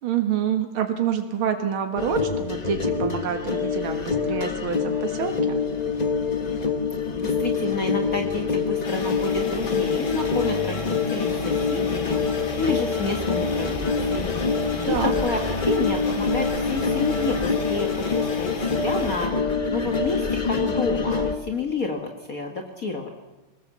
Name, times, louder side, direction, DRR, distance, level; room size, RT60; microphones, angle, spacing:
voice 1, 0.0-5.6 14.9-15.1, right 8 dB, 85° right, 6 dB, 2.4 m, -27 dB
sound 1, 2.0-21.4, left 4 dB, 30° left, 0.8 m, -25 dB
voice 2, 7.1-12.2 12.6-14.4 14.9-19.3 19.7-23.1, left 3 dB, 45° left, 4 dB, 1.9 m, -29 dB
sound 2, 8.8-19.3, left 2 dB, 70° left, 3.3 m, -36 dB
22.0 x 20.0 x 7.4 m, 1.1 s
omnidirectional pair, 2.2 m